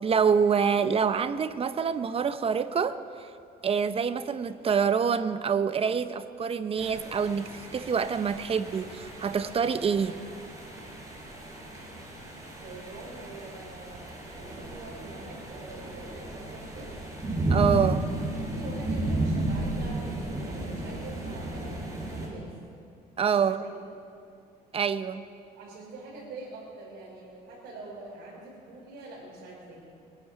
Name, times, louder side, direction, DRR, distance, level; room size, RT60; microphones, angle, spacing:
voice 1, 0.0-3.0 3.6-10.2 17.5-18.1 23.2-23.6 24.7-25.2, right 6 dB, 35° right, 12 dB, 0.7 m, -26 dB
sound 1, 6.8-22.3, right 2 dB, 20° right, 4.6 m, -34 dB
voice 2, 12.6-16.9 18.4-22.5 23.2-23.8 25.6-29.8, right 2 dB, 75° right, -6 dB, 3.7 m, -44 dB
21.5 x 10.5 x 5.9 m, 2.4 s
cardioid pair, 110°, 17 cm